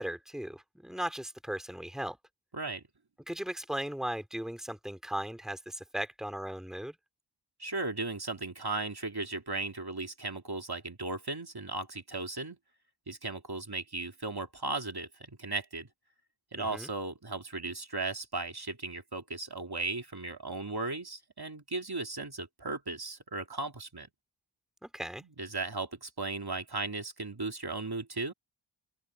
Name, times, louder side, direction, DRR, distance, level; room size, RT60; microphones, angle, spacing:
voice 1, 0.0-2.2 3.3-7.0 16.6-16.9 24.8-25.2, right 1 dB, ahead, 2.6 m, -37 dB
voice 2, 7.6-12.6 13.1-15.9 16.5-24.1 25.2-28.3, right 3 dB, 50° right, 2.7 m, -36 dB
open air
wide cardioid pair, 60°, 50 cm